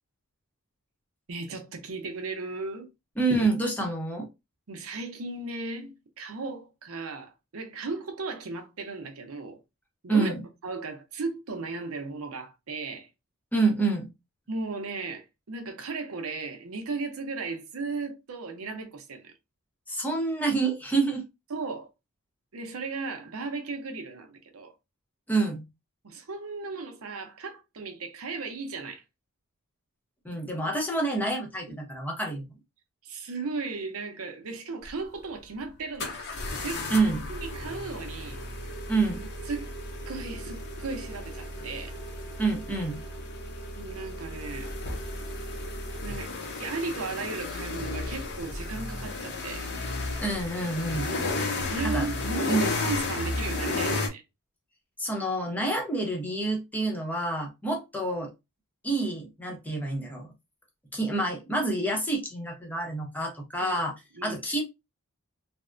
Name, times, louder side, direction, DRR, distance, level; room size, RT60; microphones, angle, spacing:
voice 1, 1.3-2.9 4.7-9.6 10.0-10.3 10.6-13.1 14.5-19.3 21.5-21.9 22.5-24.7 26.0-29.0 31.7-31.8 33.0-36.2 36.6-36.9 37.3-38.4 39.5-39.7 40.1-42.0 43.8-44.7 46.0-46.3 46.6-49.7 51.4-54.2 63.6-63.8 64.2-64.4, right 3 dB, 70° right, 0.6 m, -36 dB
voice 2, 3.2-4.3 10.1-10.4 13.5-14.1 19.9-21.2 25.3-25.6 30.2-32.4 36.9-37.2 38.9-39.3 42.4-43.0 50.2-51.1 51.8-52.1 52.5-52.7 55.0-58.3 58.8-60.3 60.9-63.9 64.2-64.6, right 2 dB, 10° left, 0.7 m, -27 dB
sound 1, 34.8-34.9 36.0-54.1, left 2 dB, 50° left, 0.7 m, -33 dB
3.3 x 2.1 x 2.5 m
head